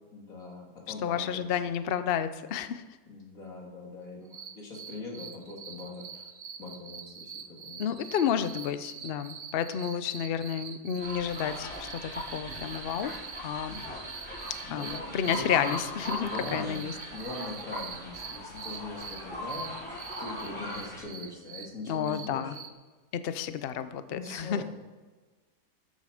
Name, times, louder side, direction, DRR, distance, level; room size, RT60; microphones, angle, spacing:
voice 1, 0.1-1.6 3.1-6.3 6.6-7.9 13.7-13.9 14.2-15.7 16.1-19.7 20.2-22.6 24.1-24.6, left 3 dB, 50° left, -2 dB, 3.0 m, -42 dB
voice 2, 1.0-2.8 7.8-13.1 13.4-13.8 14.7-16.9 21.9-22.6 23.2-24.6, left 8 dB, 75° left, 12 dB, 0.5 m, -31 dB
sound 1, 4.3-22.7, right 6 dB, 50° right, 0.6 m, -44 dB
sound 2, 11.0-21.0, left 1 dB, 5° left, 4.1 m, -39 dB
13.5 x 9.5 x 5.0 m, 1.3 s
omnidirectional pair, 1.8 m